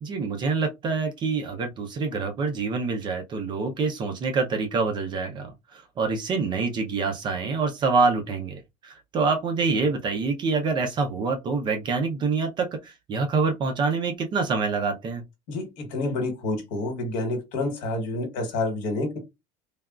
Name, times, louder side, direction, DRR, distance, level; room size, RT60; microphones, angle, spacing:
voice 1, 0.0-15.2, right 4 dB, 30° right, 0.5 m, -26 dB
voice 2, 15.5-19.2, left 2 dB, 65° left, 1.3 m, -28 dB
3.3 x 2.3 x 2.3 m
cardioid pair, 150°, 14 cm